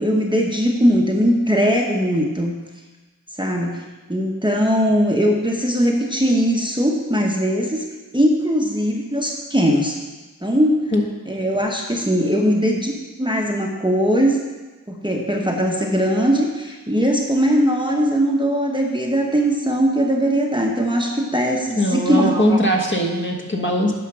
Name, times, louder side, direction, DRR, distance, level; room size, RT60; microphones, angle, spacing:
voice 1, 0.0-2.6 3.4-7.9 8.1-10.0 10.4-10.8 11.3-12.9 13.2-14.4 14.9-22.6, equal, 15° right, 0 dB, 1.0 m, -20 dB
voice 2, 21.8-23.9, equal, 35° left, 0 dB, 1.4 m, -20 dB
9.6 x 5.1 x 6.0 m, 1.2 s
wide cardioid pair, 50°, 34 cm